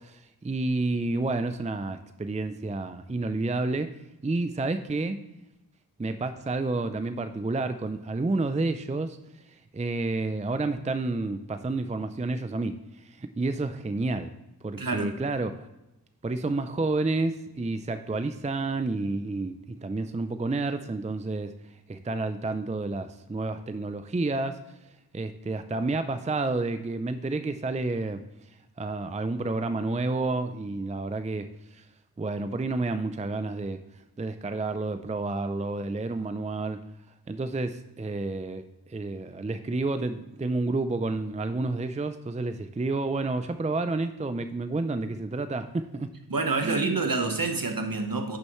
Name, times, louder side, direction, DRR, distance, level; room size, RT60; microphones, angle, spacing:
voice 1, 0.0-3.9 4.2-5.2 6.0-9.2 9.5-14.3 14.6-15.7 16.2-21.5 21.9-24.6 25.1-28.2 28.8-31.8 32.2-33.8 34.2-36.8 37.3-46.1 46.6-47.2, right 3 dB, 20° right, 0.4 m, -30 dB
voice 2, 14.8-15.1 46.3-48.4, right 3 dB, 60° right, 1.2 m, -27 dB
10.0 x 6.5 x 3.1 m
wide cardioid pair, 50°, 39 cm